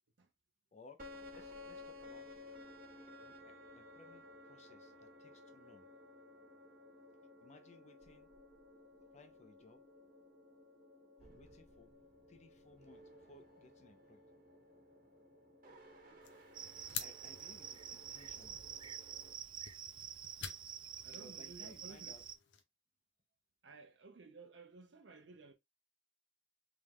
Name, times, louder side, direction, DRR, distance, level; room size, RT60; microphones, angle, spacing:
voice 1, 0.7-1.0 1.3-2.3 3.2-5.9 7.4-8.3 9.1-9.8 11.2-11.9 12.3-14.2 17.0-18.6 21.1-22.2, left 3 dB, 40° left, 0.7 m, -61 dB
sound 1, 1.0-19.3, left 2 dB, 50° right, 1.3 m, -57 dB
sound 2, 16.2-22.6, left 7 dB, 80° left, 0.8 m, -51 dB
Cricket, 16.5-22.4, right 8 dB, 25° right, 0.3 m, -48 dB
voice 2, 21.0-22.2 23.6-25.5, right 3 dB, 75° right, 0.7 m, -56 dB
3.6 x 3.4 x 3.1 m
head